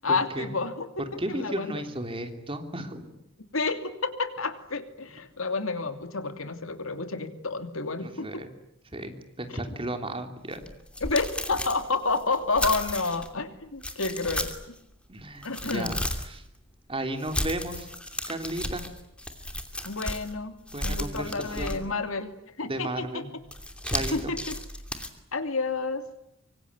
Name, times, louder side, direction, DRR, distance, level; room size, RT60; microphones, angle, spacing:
voice 1, 0.0-1.8 3.5-8.4 9.5-9.6 11.0-14.8 15.4-15.9 19.8-20.5 20.8-22.3 22.6-23.3 24.1-24.6 25.3-26.1, left 3 dB, 90° left, 9 dB, 2.8 m, -30 dB
voice 2, 1.2-3.2 8.0-8.5 8.9-10.6 15.1-16.4 16.9-17.9 18.3-18.8 20.7-21.8 22.6-23.3 23.8-24.3, right 1 dB, 25° right, 7 dB, 3.1 m, -34 dB
sound 1, 10.5-13.3 13.8-14.8 15.2-16.4 17.2-20.3 20.7-22.1 23.5-25.1, left 1 dB, 5° left, 2.7 m, -34 dB
25.0 x 25.0 x 9.6 m, 0.76 s
head